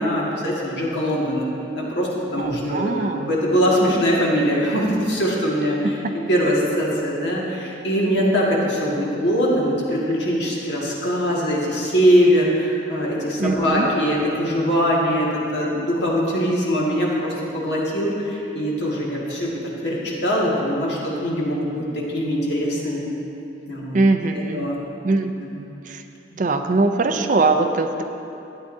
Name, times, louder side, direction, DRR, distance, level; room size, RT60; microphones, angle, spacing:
voice 1, 0.0-6.0 6.3-19.5 19.8-23.1 23.7-24.0 24.5-24.8 25.4-25.6, equal, 75° left, -5 dB, 1.9 m, -22 dB
voice 2, 2.4-3.3 5.8-6.0 13.4-13.9 23.9-24.7 25.0-25.3 25.9-26.0 26.4-28.0, right 3 dB, 45° right, 6 dB, 0.4 m, -21 dB
12.5 x 9.0 x 2.7 m, 2.9 s
head